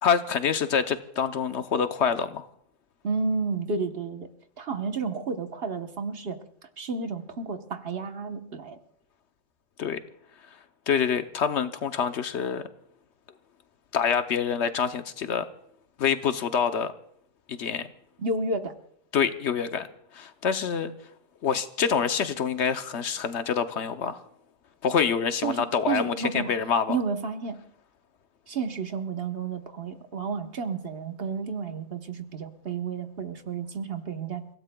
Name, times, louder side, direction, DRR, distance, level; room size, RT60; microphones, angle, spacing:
voice 1, 0.0-2.5 9.8-10.0 10.9-12.6 13.9-15.5 16.0-16.9 17.5-17.9 19.1-19.9 20.1-20.9 21.4-24.2 24.8-27.0, left 7 dB, 65° left, 10 dB, 1.0 m, -26 dB
voice 2, 3.0-4.3 4.6-8.8 18.2-18.8 25.4-26.5 26.9-27.6 28.5-34.4, right 4 dB, 55° right, 7 dB, 1.2 m, -31 dB
29.5 x 16.5 x 2.2 m, 0.69 s
omnidirectional pair, 1.3 m